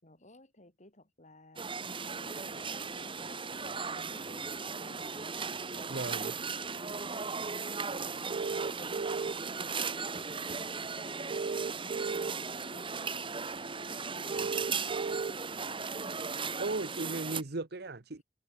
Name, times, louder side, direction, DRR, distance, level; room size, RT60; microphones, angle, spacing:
voice 1, 0.0-5.2 5.5-6.9 7.3-10.1 10.4-17.3, left 1 dB, 40° left, 6.8 m, -57 dB
sound 1, 1.6-17.4, right 5 dB, 30° right, 1.8 m, -37 dB
voice 2, 5.9-6.3 16.6-18.2, right 2 dB, 60° right, 1.1 m, -36 dB
sound 2, 6.2-6.3 8.3-9.5 11.3-12.3 14.3-15.3, right 4 dB, 45° right, 0.4 m, -35 dB
head